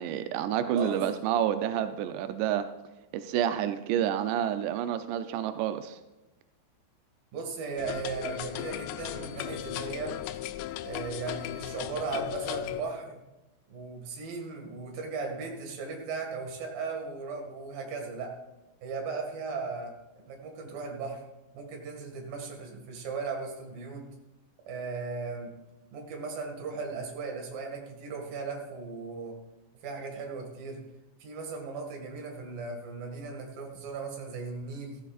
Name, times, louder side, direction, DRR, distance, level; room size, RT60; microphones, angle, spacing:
voice 1, 0.0-2.7 3.1-6.0, right 10 dB, 90° right, 9 dB, 2.4 m, -29 dB
voice 2, 7.3-10.2 10.8-13.2 13.7-18.3 18.8-19.9 20.3-21.2 21.5-24.0 24.6-25.5 25.9-29.4 29.8-30.8 31.2-35.0, right 4 dB, 55° right, 1 dB, 3.2 m, -37 dB
sound 1, 7.8-12.8, left 13 dB, 85° left, 3.2 m, -36 dB
16.5 x 14.0 x 2.5 m, 1.0 s
omnidirectional pair, 5.8 m